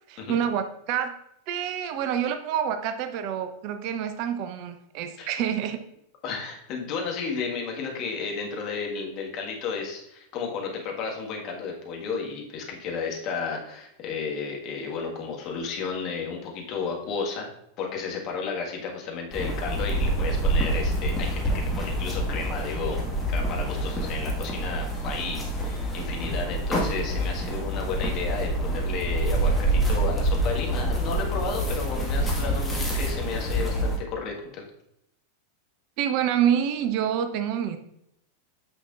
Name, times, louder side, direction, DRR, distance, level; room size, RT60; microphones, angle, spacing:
voice 1, 0.1-1.1 1.5-5.8 36.0-37.8, right 9 dB, 45° right, 8 dB, 0.6 m, -27 dB
voice 2, 6.2-17.5 17.8-23.0 23.3-34.7, left 5 dB, 40° left, 0 dB, 1.6 m, -33 dB
sound 1, 19.3-34.0, right 1 dB, 10° left, 1.8 m, -27 dB
8.8 x 5.9 x 2.5 m, 0.78 s
figure-of-eight pair, 90°, 0 cm